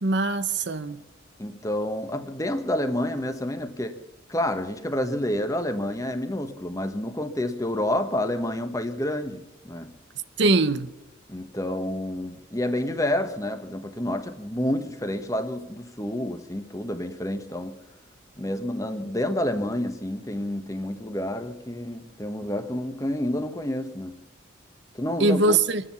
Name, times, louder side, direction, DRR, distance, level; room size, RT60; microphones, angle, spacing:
voice 1, 0.0-1.0 10.4-10.9 25.2-25.8, right 2 dB, 60° right, 0.8 m, -22 dB
voice 2, 1.4-4.0 4.3-9.9 11.3-17.8 18.4-24.2 25.0-25.6, left 1 dB, 15° left, 1.2 m, -29 dB
25.5 x 10.0 x 5.7 m
head